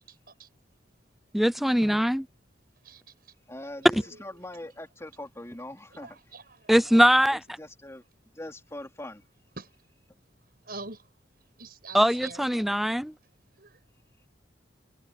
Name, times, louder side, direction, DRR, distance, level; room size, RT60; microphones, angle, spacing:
voice 1, 0.1-0.5 2.8-3.1 6.0-7.0 9.6-9.7 10.6-11.0 11.6-12.4 13.6-13.8, right 3 dB, 55° right, 6.7 m, -44 dB
voice 2, 1.3-2.3 6.7-7.4 11.9-13.1, equal, ahead, 0.4 m, -21 dB
voice 3, 3.5-6.2 7.3-8.0 8.3-9.2, left 1 dB, 15° left, 3.5 m, -42 dB
head